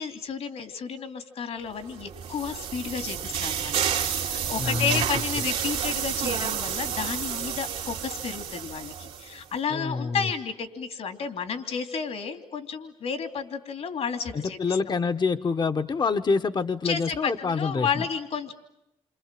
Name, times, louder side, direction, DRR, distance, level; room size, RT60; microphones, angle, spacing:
voice 1, 0.0-14.8 16.8-18.5, left 6 dB, 70° left, 7 dB, 2.9 m, -32 dB
sound 1, 1.9-9.4, right 8 dB, 85° right, 2.2 m, -30 dB
voice 2, 4.6-5.0 5.4-5.5 9.7-10.3 14.3-18.1, left 4 dB, 40° left, 7 dB, 1.1 m, -26 dB
28.5 x 26.5 x 7.6 m, 0.84 s
cardioid pair, 70°, 11 cm